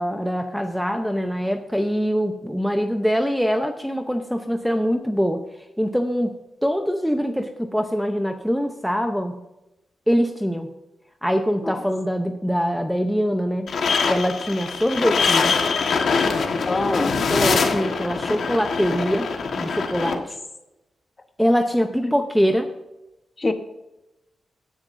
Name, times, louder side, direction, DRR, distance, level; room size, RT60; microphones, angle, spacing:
voice 1, 0.0-5.4 5.8-9.4 10.1-10.7 11.2-13.7 14.1-15.6 17.3-19.3 19.6-20.4 21.4-22.7, equal, ahead, 5 dB, 0.7 m, -23 dB
sound 1, 13.7-20.1, left 5 dB, 65° left, 1.4 m, -23 dB
voice 2, 16.7-17.2 20.0-20.2 22.0-22.1 23.4-23.5, left 2 dB, 30° left, 7 dB, 1.1 m, -25 dB
17.0 x 10.0 x 2.6 m, 0.95 s
wide cardioid pair, 115°, 0 cm